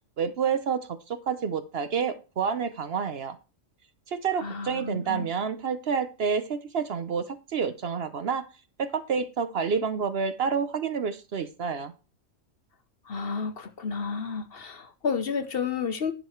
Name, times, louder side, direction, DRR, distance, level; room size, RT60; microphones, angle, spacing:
voice 1, 0.2-3.4 4.1-8.5 8.8-11.9, right 6 dB, 55° right, 0.9 m, -29 dB
voice 2, 4.4-5.3 13.0-16.1, left 5 dB, 50° left, 1.0 m, -31 dB
10.5 x 6.7 x 4.4 m
omnidirectional pair, 1.3 m